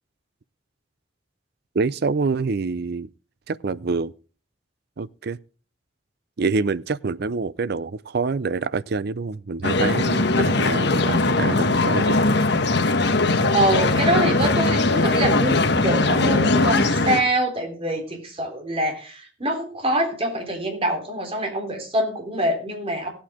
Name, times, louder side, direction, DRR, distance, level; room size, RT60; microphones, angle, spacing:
voice 1, 1.7-3.1 3.5-4.1 5.0-5.4 6.4-12.2, right 4 dB, 60° right, 0.6 m, -26 dB
sound 1, 9.6-17.2, left 2 dB, 65° left, 1.3 m, -20 dB
voice 2, 13.5-23.1, right 1 dB, 30° right, 3.6 m, -25 dB
17.5 x 8.7 x 3.7 m
head